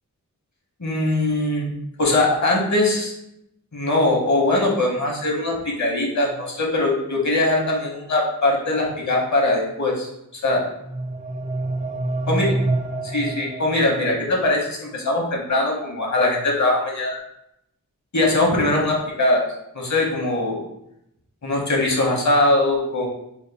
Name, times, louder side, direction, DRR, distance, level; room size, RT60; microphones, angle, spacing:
voice 1, 0.8-1.7 2.0-3.1 3.7-10.1 10.4-10.6 12.3-12.5 13.0-17.2 18.1-19.4 19.7-20.6 21.4-23.1, left 2 dB, 55° left, -1 dB, 1.0 m, -21 dB
sound 1, 10.5-14.5, right 2 dB, 20° right, 0.4 m, -27 dB
4.2 x 2.2 x 3.4 m, 0.80 s
wide cardioid pair, 65°, 35 cm